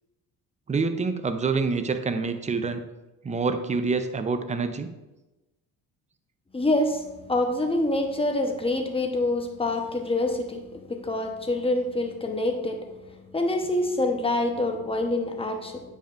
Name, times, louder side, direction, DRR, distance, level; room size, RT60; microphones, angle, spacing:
voice 1, 0.7-2.8 3.2-4.9, right 4 dB, 20° right, 9 dB, 0.6 m, -26 dB
voice 2, 6.5-12.8 13.3-15.8, left 2 dB, 15° left, 4 dB, 1.0 m, -26 dB
8.7 x 5.3 x 2.5 m, 1.0 s
supercardioid pair, 80°, 38 cm